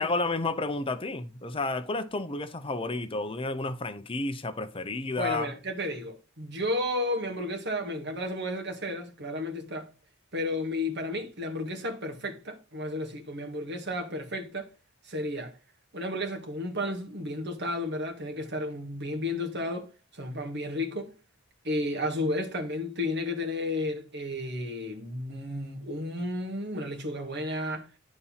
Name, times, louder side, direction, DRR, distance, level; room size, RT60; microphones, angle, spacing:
voice 1, 0.0-5.5, left 3 dB, 25° left, 0.6 m, -31 dB
voice 2, 5.2-9.9 10.3-14.7 15.0-15.6 15.9-21.2 21.6-27.9, left 1 dB, 55° right, 1.8 m, -32 dB
10.5 x 4.2 x 5.6 m
head